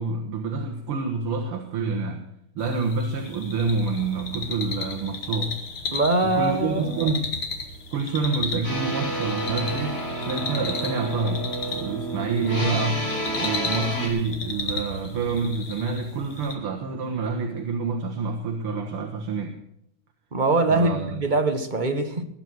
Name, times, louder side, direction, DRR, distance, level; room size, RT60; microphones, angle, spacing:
voice 1, 0.0-2.2 2.6-5.6 6.2-7.3 7.9-13.1 13.4-19.6 20.7-21.2, right 4 dB, 80° right, 3 dB, 2.4 m, -27 dB
sound 1, 2.6-16.5, left 3 dB, 70° left, 2.9 m, -35 dB
voice 2, 5.9-7.1 20.3-22.2, right 2 dB, 30° right, 7 dB, 1.0 m, -23 dB
sound 2, 8.6-14.1, right 1 dB, 40° left, 5.3 m, -30 dB
21.0 x 8.9 x 6.2 m, 0.75 s
omnidirectional pair, 2.4 m